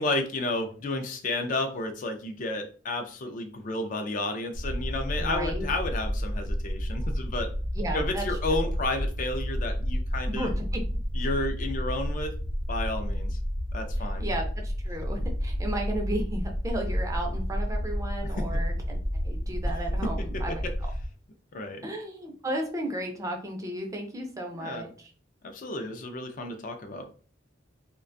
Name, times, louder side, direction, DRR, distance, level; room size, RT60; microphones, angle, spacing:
voice 1, 0.0-7.5 7.9-10.5 11.1-12.3 12.7-13.4 13.7-14.2 18.4-18.5 20.0-20.4 21.5-21.8 24.5-24.8 25.4-27.1, left 2 dB, 45° left, 5 dB, 0.4 m, -32 dB
sound 1, 4.5-21.1, equal, 70° left, 0.8 m, -30 dB
voice 2, 5.2-5.7 7.8-8.4 10.3-10.8 14.2-19.0 19.2-20.6 21.8-25.1, right 1 dB, 20° right, 2 dB, 0.4 m, -34 dB
2.4 x 2.2 x 2.5 m, 0.41 s
head